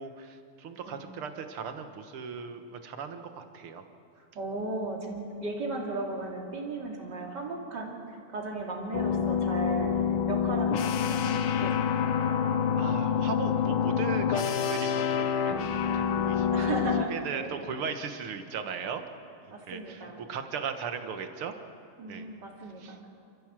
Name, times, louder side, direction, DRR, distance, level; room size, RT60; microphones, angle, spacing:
voice 1, 0.0-3.8 12.8-16.8 17.1-19.0 19.7-21.5 22.1-22.3 22.8-23.0, right 6 dB, 85° right, 8 dB, 2.2 m, -38 dB
voice 2, 4.2-9.9 10.3-12.1 16.5-17.5 19.5-20.2 22.0-23.1, right 2 dB, 50° right, 0 dB, 3.2 m, -36 dB
sound 1, 8.9-17.1, left 8 dB, 75° left, 1.7 m, -27 dB
27.5 x 14.5 x 7.5 m, 2.6 s
omnidirectional pair, 2.3 m